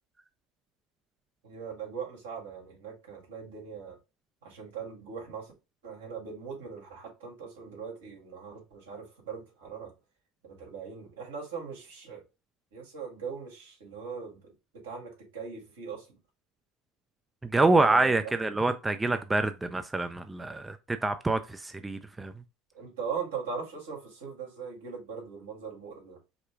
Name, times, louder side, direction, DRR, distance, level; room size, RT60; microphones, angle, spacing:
voice 1, 1.4-4.0 4.4-5.5 5.8-9.9 10.4-12.2 12.7-16.1 17.6-18.3 22.7-26.2, right 6 dB, 85° right, 2.3 m, -40 dB
voice 2, 17.4-22.3, right 2 dB, 15° right, 0.4 m, -26 dB
4.9 x 2.2 x 4.6 m
hypercardioid pair, 95°, 0 cm